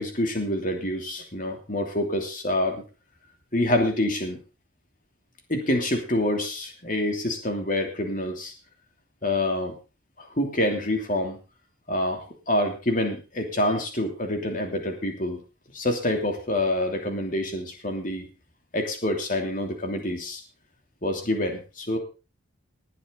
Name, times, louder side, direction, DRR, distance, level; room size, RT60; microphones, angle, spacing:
voice 1, 0.0-2.8 3.5-4.4 5.5-8.5 9.2-9.7 10.2-11.4 11.9-15.4 15.7-18.3 18.7-20.4 21.0-22.0, left 1 dB, 40° left, 4 dB, 3.0 m, -27 dB
20.0 x 9.2 x 3.9 m, 0.30 s
head